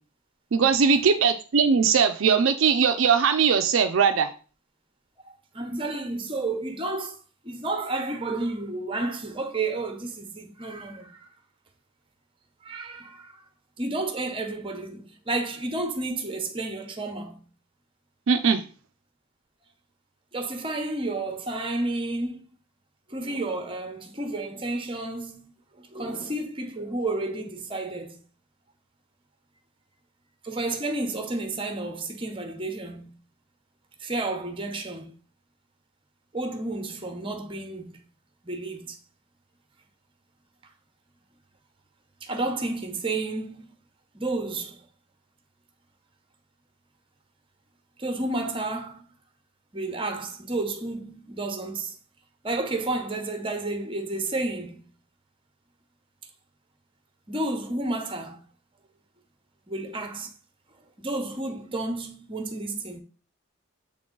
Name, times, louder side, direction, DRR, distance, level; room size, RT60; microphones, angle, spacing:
voice 1, 0.5-4.3 18.3-18.6, right 6 dB, 60° right, 0.4 m, -20 dB
voice 2, 5.3-7.2 7.4-11.3 12.6-13.4 13.8-17.4 20.3-22.4 23.1-28.2 30.4-33.1 34.0-35.2 36.3-38.0 38.4-39.0 42.2-43.6 44.1-44.8 48.0-49.1 49.7-51.9 52.4-54.8 57.3-58.4 59.7-60.3 61.0-63.0, right 2 dB, 25° right, 0.9 m, -31 dB
7.1 x 3.8 x 3.8 m
head